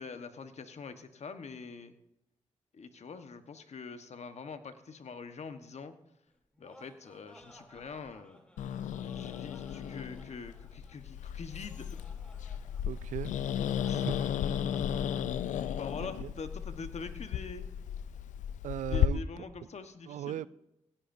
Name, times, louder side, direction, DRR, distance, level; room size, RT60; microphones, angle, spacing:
voice 1, 0.0-1.9 2.7-5.9 6.6-8.4 9.0-12.0 13.9-14.0 15.8-17.7 18.9-20.4, left 5 dB, 60° left, 1.3 m, -44 dB
Laughter, 6.3-15.5, equal, 10° left, 3.2 m, -58 dB
Growling, 8.6-19.1, left 10 dB, 90° left, 0.5 m, -34 dB
voice 2, 12.8-13.3 14.0-14.2 16.0-16.3 18.6-19.4 20.1-20.5, right 11 dB, 85° right, 0.4 m, -38 dB
17.0 x 16.0 x 2.7 m
cardioid pair, 50°, 12 cm